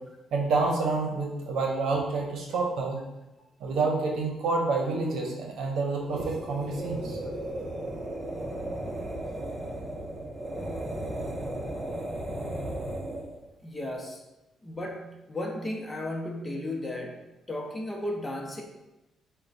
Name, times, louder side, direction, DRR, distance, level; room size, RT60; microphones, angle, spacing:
voice 1, 0.3-3.0 3.6-7.2, right 3 dB, 75° right, 1 dB, 0.8 m, -28 dB
sound 1, 6.0-13.4, right 1 dB, 25° right, 0.8 m, -35 dB
voice 2, 13.6-14.2 14.6-17.2 17.5-18.6, left 1 dB, 15° left, 1 dB, 0.8 m, -34 dB
4.4 x 2.2 x 3.9 m, 0.98 s
cardioid pair, 90°, 0 cm